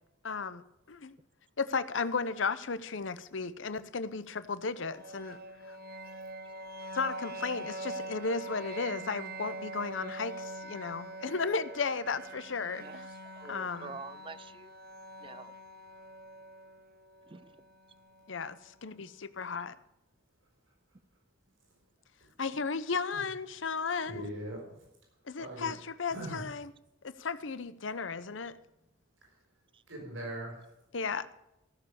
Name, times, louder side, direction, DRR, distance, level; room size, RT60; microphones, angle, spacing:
voice 1, 0.2-1.1 1.6-5.4 5.7-5.8 6.9-13.1 13.5-14.0 18.3-19.7 22.4-24.3 25.3-26.6 27.0-28.5 30.9-31.3, left 4 dB, 75° left, 14 dB, 0.8 m, -34 dB
sound 1, 4.8-18.7, right 2 dB, 50° right, 1.0 m, -44 dB
voice 2, 13.2-14.7 15.2-15.5 17.3-17.6 29.7-29.8, right 4 dB, 25° right, 17 dB, 0.5 m, -47 dB
voice 3, 24.1-24.8 25.4-25.7 26.1-26.5 29.2-29.4 29.9-30.7, right 1 dB, 85° right, -1 dB, 5.5 m, -41 dB
15.0 x 7.1 x 6.8 m, 0.88 s
head